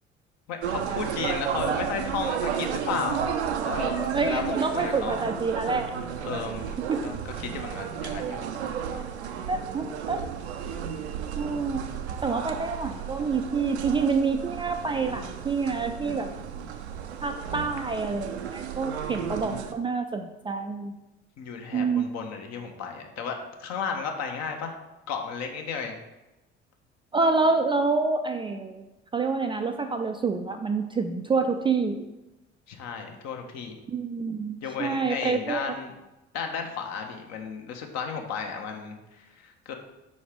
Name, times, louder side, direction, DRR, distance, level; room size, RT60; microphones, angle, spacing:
voice 1, 0.5-3.2 3.6-5.2 6.2-8.5 8.9-9.1 19.0-19.2 19.5-19.6 21.4-24.7 25.1-25.9 32.7-33.8 34.6-35.9 36.3-39.7, left 6 dB, 50° left, 4 dB, 0.9 m, -34 dB
sound 1, 0.6-19.7, right 8 dB, 75° right, 0.5 m, -33 dB
voice 2, 4.1-5.9 6.9-7.0 9.5-10.2 11.4-11.8 12.2-16.3 17.2-20.9 21.7-22.1 27.1-28.8 29.1-32.0 33.9-35.7, right 4 dB, 15° right, 5 dB, 0.3 m, -27 dB
4.8 x 4.2 x 5.0 m, 1.0 s
figure-of-eight pair, 55°, 33 cm